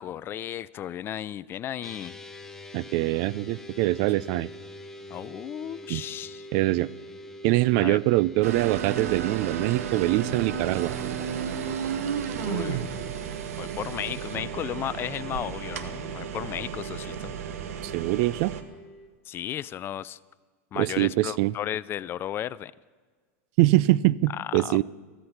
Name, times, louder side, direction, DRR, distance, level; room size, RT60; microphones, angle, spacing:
voice 1, 0.0-2.2 5.1-6.5 7.7-8.0 12.3-12.9 13.6-17.3 19.3-20.2 20.7-22.7 24.3-24.8, left 11 dB, 30° left, 20 dB, 0.3 m, -34 dB
sound 1, 1.8-19.1, equal, 5° left, 1.1 m, -45 dB
voice 2, 2.7-4.5 5.9-6.0 6.5-6.9 7.4-10.9 17.8-18.5 20.7-21.5 23.6-24.8, right 18 dB, 55° right, 21 dB, 0.4 m, -23 dB
sound 2, 8.4-18.6, right 8 dB, 80° right, 1.2 m, -33 dB
14.5 x 14.0 x 5.8 m, 1.5 s
supercardioid pair, 125°, 8 cm